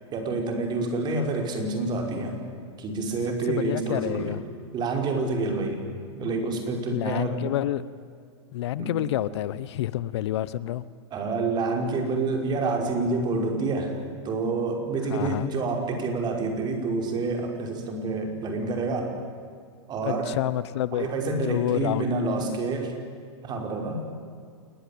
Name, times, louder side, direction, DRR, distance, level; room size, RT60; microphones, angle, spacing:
voice 1, 0.1-2.4 2.8-4.4 4.7-5.8 6.1-7.5 8.8-8.9 11.1-14.0 14.2-19.2 19.9-20.3 20.9-23.0 23.4-24.0, right 3 dB, 30° right, 3 dB, 5.3 m, -28 dB
voice 2, 3.5-4.4 6.9-7.8 8.5-10.8 15.1-15.5 20.1-21.1 21.5-22.0, left 13 dB, 65° left, 17 dB, 0.9 m, -28 dB
28.5 x 20.0 x 8.7 m, 2.2 s
hypercardioid pair, 130°, 15 cm